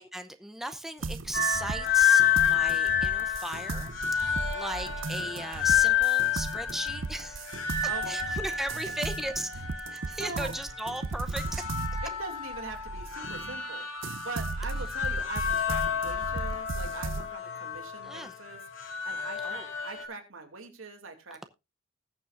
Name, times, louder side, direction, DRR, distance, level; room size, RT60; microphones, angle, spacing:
voice 1, 0.0-11.9 18.0-18.3 19.4-19.7, right 1 dB, ahead, 7 dB, 0.8 m, -37 dB
sound 1, 1.0-13.6 14.0-17.3, right 3 dB, 65° right, 0.6 m, -37 dB
sound 2, 1.3-20.1, left 8 dB, 75° left, 2.2 m, -29 dB
voice 2, 7.8-8.2 8.7-8.8 10.1-10.5 12.0-21.5, right 3 dB, 85° right, 4 dB, 2.6 m, -42 dB
20.0 x 6.9 x 2.6 m, 0.25 s
head